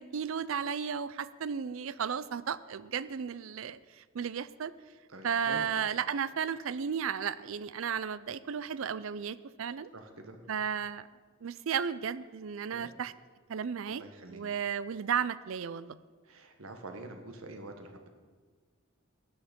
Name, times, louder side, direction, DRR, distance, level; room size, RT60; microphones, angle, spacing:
voice 1, 0.0-4.7 5.2-9.9 10.5-11.1 11.4-13.1 13.5-14.0 14.3-16.0, right 7 dB, 70° right, 17 dB, 0.4 m, -34 dB
voice 2, 5.1-5.6 9.9-10.4 12.7-12.9 13.9-14.4 16.3-18.1, right 2 dB, 85° right, 5 dB, 1.4 m, -46 dB
13.0 x 8.8 x 5.2 m, 1.5 s
head